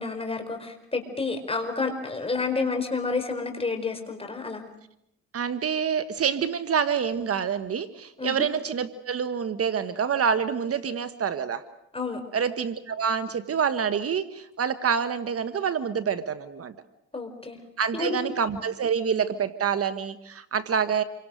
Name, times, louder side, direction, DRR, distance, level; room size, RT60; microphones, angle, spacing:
voice 1, 0.0-4.6 8.2-8.4 11.9-12.2 17.1-17.6 17.9-18.2, left 4 dB, 20° left, 5 dB, 4.9 m, -30 dB
voice 2, 5.3-11.6 12.3-16.7 17.8-21.0, right 7 dB, 50° right, 11 dB, 1.3 m, -27 dB
28.0 x 24.5 x 6.5 m, 0.80 s
cardioid pair, 90°, 30 cm